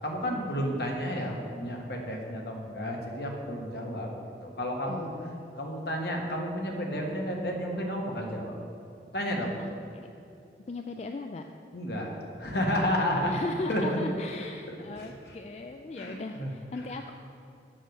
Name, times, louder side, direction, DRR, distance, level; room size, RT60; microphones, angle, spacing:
voice 1, 0.0-4.1 4.4-5.1 5.6-8.6 9.1-9.6 11.7-13.3 13.7-14.0 14.7-15.1 16.0-16.5, equal, 65° left, 0 dB, 1.5 m, -31 dB
voice 2, 4.9-5.5 9.6-9.7 9.9-10.1 10.7-11.5 13.0-17.1, left 2 dB, 40° left, 5 dB, 0.3 m, -37 dB
7.7 x 6.5 x 6.5 m, 2.7 s
head